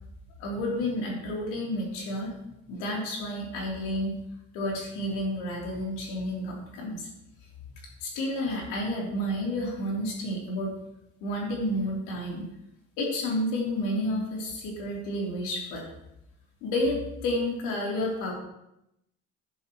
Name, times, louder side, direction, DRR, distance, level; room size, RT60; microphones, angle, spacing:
voice 1, 0.4-2.3 2.7-4.2 4.5-7.1 8.0-10.7 11.2-12.5 13.0-15.8 16.6-17.0 17.2-18.3, left 1 dB, 90° left, -2 dB, 3.5 m, -30 dB
11.0 x 11.0 x 3.1 m, 0.84 s
cardioid pair, 145°, 29 cm